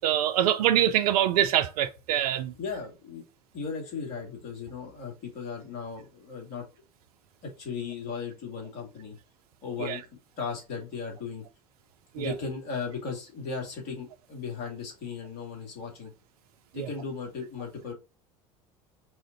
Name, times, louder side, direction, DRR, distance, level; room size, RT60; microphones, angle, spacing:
voice 1, 0.0-2.5 9.8-10.0 12.2-12.3, right 11 dB, 75° right, 0.5 m, -24 dB
voice 2, 2.5-3.2 3.5-6.7 7.4-9.2 9.6-10.0 10.4-11.4 12.2-16.1 16.7-17.9, left 5 dB, 60° left, 2.5 m, -36 dB
4.8 x 2.5 x 4.0 m
hypercardioid pair, 75°, 19 cm